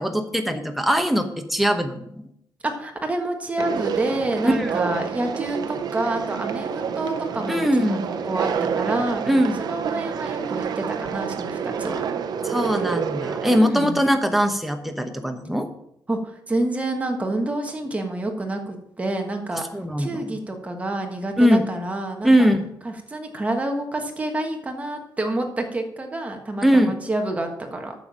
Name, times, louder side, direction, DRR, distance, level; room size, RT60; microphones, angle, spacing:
voice 1, 0.0-2.2 4.4-4.7 7.5-8.1 9.3-9.6 12.4-15.7 19.7-20.2 21.4-21.7 22.2-22.6 26.6-26.9, equal, ahead, 5 dB, 1.0 m, -21 dB
voice 2, 2.6-8.5 8.7-9.2 9.6-12.0 13.6-14.0 16.1-19.6 20.0-22.3 22.8-27.9, right 1 dB, 15° right, 3 dB, 1.4 m, -28 dB
Conversation, 3.6-13.6, right 7 dB, 60° right, 0.7 m, -28 dB
9.2 x 7.2 x 6.2 m, 0.77 s
wide cardioid pair, 160°, 8 cm